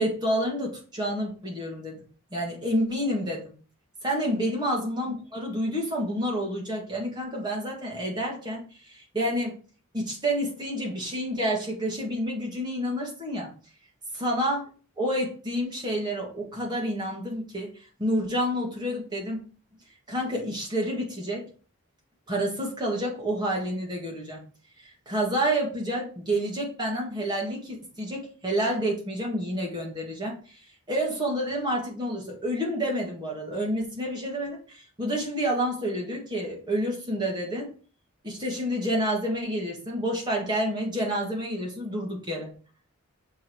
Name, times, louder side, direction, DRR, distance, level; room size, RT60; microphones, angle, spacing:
voice 1, 0.0-2.0 2.3-3.5 4.0-9.5 9.9-13.5 14.1-14.7 15.0-17.7 18.0-19.4 20.1-21.5 22.3-24.4 24.8-30.6 30.9-37.7 38.2-42.5, equal, 20° right, -2 dB, 1.8 m, -29 dB
6.4 x 3.6 x 4.6 m, 0.39 s
head